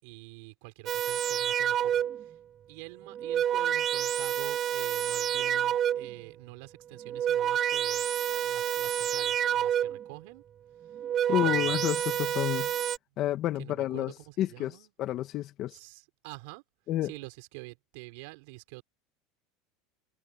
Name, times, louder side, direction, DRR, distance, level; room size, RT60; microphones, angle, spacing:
voice 1, 0.0-2.4 2.7-10.4 10.8-11.0 11.3-12.1 13.1-13.2 13.6-14.9 15.7-16.6 17.0-18.8, right 27 dB, 70° right, 5.5 m, -47 dB
sound 1, 0.9-2.3 3.0-6.2 6.9-10.1 10.8-13.0, right 10 dB, 35° right, 0.6 m, -29 dB
voice 2, 11.3-12.7 13.2-14.7 15.0-15.8 16.9-17.1, left 13 dB, 45° left, 1.9 m, -30 dB
supercardioid pair, 130°, 0 cm